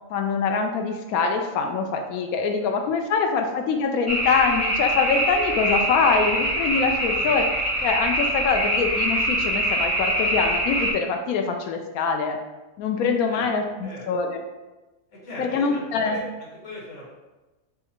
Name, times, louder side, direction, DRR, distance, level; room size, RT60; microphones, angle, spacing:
voice 1, 0.1-7.4 7.8-12.4 12.8-14.4 15.4-16.2, left 5 dB, 85° left, 4 dB, 1.0 m, -24 dB
sound 1, 4.1-10.9, right 1 dB, 10° left, 1.0 m, -24 dB
voice 2, 15.1-17.1, left 1 dB, 60° left, -7 dB, 1.8 m, -39 dB
6.3 x 2.5 x 2.9 m, 1.1 s
omnidirectional pair, 1.5 m